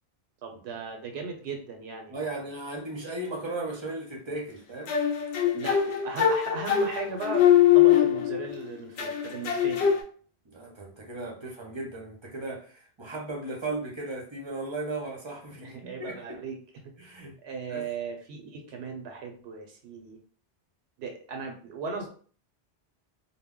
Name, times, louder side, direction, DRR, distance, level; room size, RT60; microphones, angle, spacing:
voice 1, 0.4-2.5 5.4-10.0 15.6-16.6 17.4-20.2 21.0-22.1, right 4 dB, 85° right, 3 dB, 0.8 m, -37 dB
voice 2, 2.1-4.9 10.4-16.4 17.0-17.3 17.7-17.8, right 2 dB, 35° right, 0 dB, 0.6 m, -36 dB
sound 1, 4.9-8.6 9.0-10.0, left 10 dB, 85° left, 0.9 m, -22 dB
2.2 x 2.0 x 3.5 m, 0.43 s
omnidirectional pair, 1.1 m